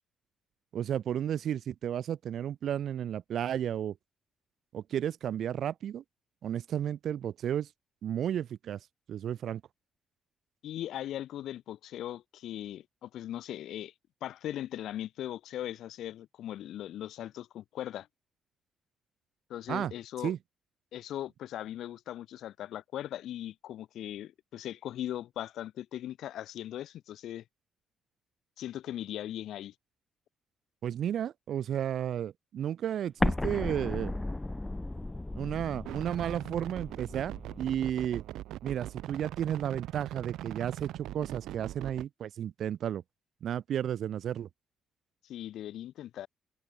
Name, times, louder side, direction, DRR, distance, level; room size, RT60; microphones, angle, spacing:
voice 1, 0.7-4.0 4.7-6.0 6.4-7.7 8.0-8.8 9.1-9.6 19.7-19.9 20.2-20.4 30.8-34.1 35.3-38.2 38.6-43.0 43.4-44.5, right 10 dB, 65° right, 3.8 m, -33 dB
voice 2, 10.6-13.9 14.2-18.1 19.5-20.3 20.9-27.4 28.6-29.7 45.2-46.3, left 12 dB, 75° left, 4.8 m, -39 dB
Explosion, 33.2-38.0, left 2 dB, 15° left, 3.6 m, -35 dB
sound 1, 35.8-42.1, right 14 dB, 85° right, 4.7 m, -41 dB
cardioid pair, 90°, 0 cm